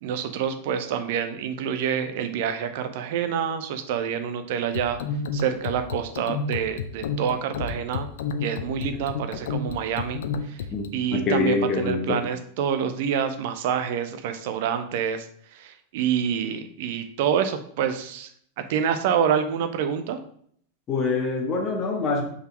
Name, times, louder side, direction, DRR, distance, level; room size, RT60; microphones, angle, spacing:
voice 1, 0.0-5.0 5.3-8.1 8.4-10.6 10.9-15.3 15.5-18.3 18.6-20.2, right 8 dB, 50° right, 9 dB, 0.6 m, -27 dB
sound 1, 4.7-10.9, left 4 dB, 55° left, 0.5 m, -31 dB
voice 2, 11.1-12.2 20.9-22.2, left 3 dB, 30° left, 1 dB, 1.1 m, -25 dB
5.4 x 4.1 x 4.5 m, 0.62 s
figure-of-eight pair, 90°, 0 cm